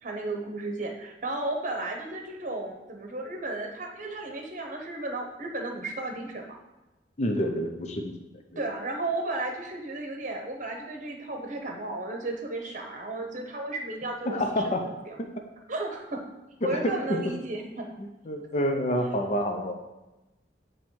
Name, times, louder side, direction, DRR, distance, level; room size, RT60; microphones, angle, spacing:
voice 1, 0.0-6.6 8.6-15.2 15.7-16.2 16.6-17.9, right 2 dB, 45° right, 3 dB, 0.9 m, -34 dB
voice 2, 7.2-8.1 14.3-14.8 16.6-17.2 18.0-19.7, equal, 40° left, 3 dB, 0.6 m, -28 dB
8.8 x 3.1 x 4.5 m, 1.0 s
head